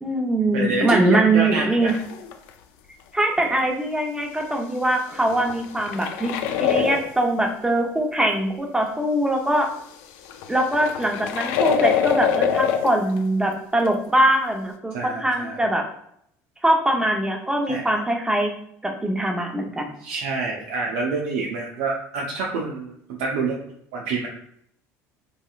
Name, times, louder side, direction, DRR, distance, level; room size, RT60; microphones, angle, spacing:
voice 1, 0.0-1.9 3.1-6.3 6.6-9.7 10.5-15.8 16.6-18.5 19.0-19.9, right 1 dB, 10° right, 2 dB, 0.7 m, -22 dB
voice 2, 0.5-1.9 6.8-6.9 14.9-15.6 17.7-17.8 20.0-22.9 23.2-23.6 23.9-24.3, right 4 dB, 75° right, -2 dB, 0.6 m, -27 dB
sound 1, 1.9-2.5 5.1-7.2 10.3-13.0 13.9-14.0, left 7 dB, 75° left, 0.4 m, -24 dB
3.1 x 2.8 x 2.4 m, 0.70 s
hypercardioid pair, 80°, 8 cm